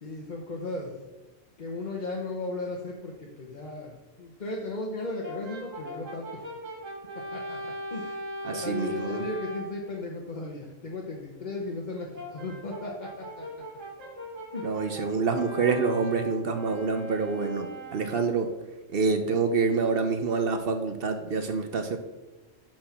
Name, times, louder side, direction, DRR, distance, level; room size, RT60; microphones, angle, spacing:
voice 1, 0.0-0.9 1.6-6.4 7.3-8.2 8.5-13.5 14.5-14.8, left 2 dB, 40° left, -1 dB, 1.0 m, -36 dB
Brass instrument, 5.2-9.8 12.1-18.5, equal, 85° right, 2.2 m, -39 dB
voice 2, 8.4-9.2 14.6-18.5 18.9-22.0, right 4 dB, 55° right, 6 dB, 0.8 m, -27 dB
6.4 x 6.1 x 5.7 m, 1.1 s
omnidirectional pair, 1.3 m